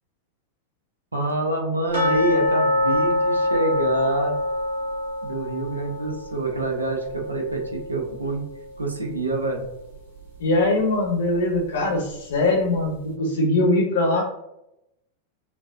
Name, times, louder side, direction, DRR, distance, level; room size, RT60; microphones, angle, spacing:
voice 1, 1.1-4.3 5.2-8.4 8.8-9.6, right 2 dB, 80° right, 1 dB, 0.8 m, -26 dB
sound 1, 1.9-8.8 9.1-9.2 9.7-9.8 10.3-10.4, left 1 dB, 65° right, 1.5 m, -25 dB
voice 2, 10.4-14.2, left 2 dB, 60° left, 0 dB, 0.9 m, -21 dB
5.7 x 2.3 x 2.5 m, 0.85 s
figure-of-eight pair, 90°, 0 cm